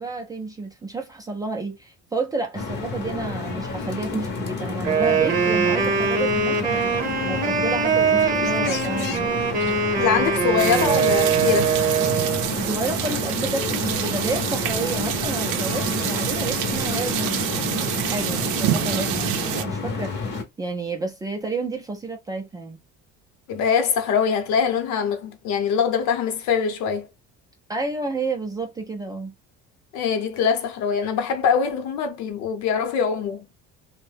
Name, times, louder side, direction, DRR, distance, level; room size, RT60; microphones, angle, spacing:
voice 1, 0.0-6.8 7.3-9.3 12.5-17.8 18.0-22.8 27.7-29.3, right 3 dB, 15° right, 0.4 m, -30 dB
sound 1, 2.5-20.4, left 4 dB, 35° left, 0.7 m, -30 dB
Wind instrument woodwind instrument, 4.8-12.5, right 5 dB, 30° right, 0.9 m, -22 dB
voice 2, 10.0-11.7 23.5-27.1 29.9-33.5, left 6 dB, 70° left, 0.8 m, -23 dB
sound 2, 10.6-19.6, right 11 dB, 80° right, 0.5 m, -27 dB
2.6 x 2.1 x 3.2 m
cardioid pair, 165°, 30 cm